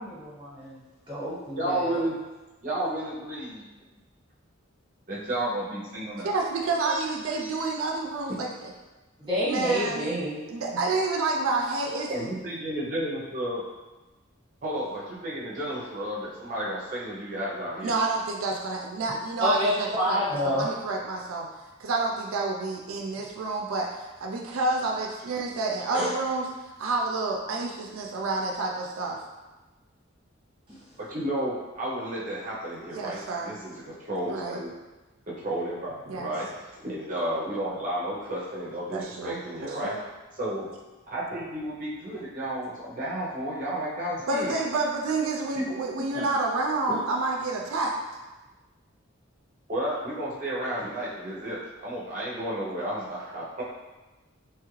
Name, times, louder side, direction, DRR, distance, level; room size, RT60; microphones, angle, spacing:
voice 1, 0.0-2.0 9.3-10.8 19.4-20.7 25.9-26.1 30.7-31.0 46.1-46.3 46.9-47.0, equal, 25° right, -9 dB, 1.1 m, -29 dB
voice 2, 1.6-2.2 2.6-3.7 5.1-6.3 6.8-7.0 7.4-7.7 12.1-13.6 14.6-17.9 31.0-34.7 35.4-39.9 40.3-40.7 41.1-44.6 45.5-45.6 49.7-53.6, right 1 dB, 40° right, -6 dB, 0.6 m, -32 dB
voice 3, 6.2-8.7 9.5-10.0 10.5-12.1 17.8-21.5 21.8-29.2 32.9-33.6 34.2-34.6 36.1-36.3 38.9-40.0 44.3-48.0, right 3 dB, 90° right, 0 dB, 0.4 m, -29 dB
3.0 x 2.4 x 3.1 m, 1.1 s
head